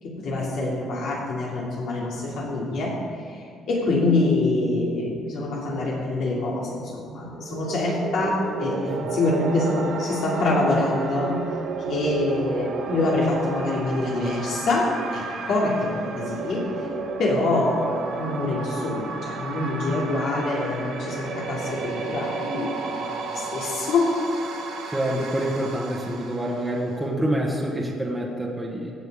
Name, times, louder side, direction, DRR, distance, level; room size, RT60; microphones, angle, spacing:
voice 1, 0.0-3.0 3.2-11.4 11.9-16.7 17.2-23.0 23.3-24.1, left 2 dB, 65° left, -4 dB, 3.1 m, -25 dB
sound 1, 7.2-27.1, right 4 dB, 70° right, 2.6 m, -33 dB
voice 2, 24.9-28.9, right 1 dB, 5° right, -3 dB, 1.5 m, -27 dB
16.5 x 6.8 x 5.1 m, 2.3 s
cardioid pair, 130°, 0 cm